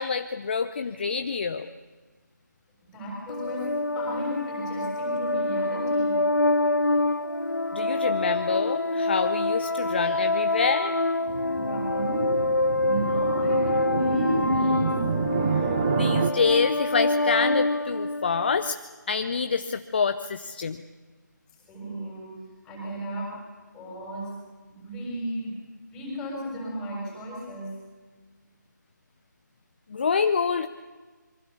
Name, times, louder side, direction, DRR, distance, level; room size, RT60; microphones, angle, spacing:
voice 1, 0.0-1.7 7.7-10.9 15.5-15.6 15.9-18.8 19.1-20.8 29.9-30.7, left 5 dB, 35° left, 10 dB, 0.7 m, -26 dB
voice 2, 2.8-6.3 11.5-12.4 12.8-15.0 21.7-23.4 23.7-24.4 24.7-25.6 25.9-27.7, equal, 5° left, -3 dB, 6.7 m, -34 dB
sound 1, 3.3-18.7, left 2 dB, 80° left, 1.0 m, -26 dB
sound 2, 11.3-16.3, right 7 dB, 20° right, 0.7 m, -29 dB
26.5 x 23.5 x 7.0 m, 1.4 s
figure-of-eight pair, 155°, 10 cm